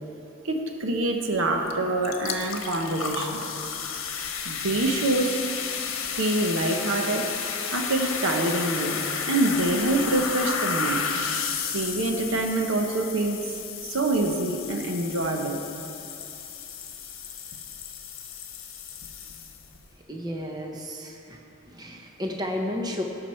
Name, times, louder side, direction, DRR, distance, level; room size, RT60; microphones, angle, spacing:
voice 1, 0.4-3.4 4.4-5.4 6.2-7.3 7.7-9.0 9.3-11.1 11.7-13.5 13.8-15.6, right 2 dB, 75° right, 3 dB, 0.9 m, -26 dB
sound 1, 1.7-1.8 2.0-19.8, left 6 dB, 70° left, 1.0 m, -32 dB
voice 2, 20.1-21.4 21.7-23.0, left 1 dB, 20° right, 1 dB, 0.7 m, -32 dB
17.5 x 5.9 x 4.4 m, 2.8 s
head